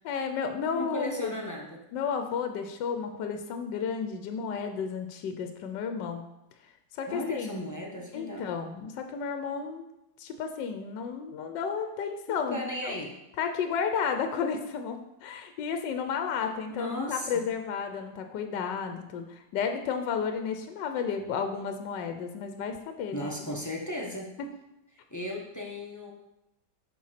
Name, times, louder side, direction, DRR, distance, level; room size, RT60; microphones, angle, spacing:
voice 1, 0.0-1.3 1.9-6.2 6.9-7.6 8.1-9.8 10.2-13.0 13.4-23.5, left 6 dB, 75° left, 7 dB, 1.3 m, -32 dB
voice 2, 0.6-1.8 7.1-8.5 12.5-13.2 16.7-17.3 23.1-24.3 25.1-26.1, left 1 dB, 15° left, -2 dB, 0.7 m, -35 dB
7.4 x 4.5 x 5.8 m, 0.88 s
omnidirectional pair, 2.0 m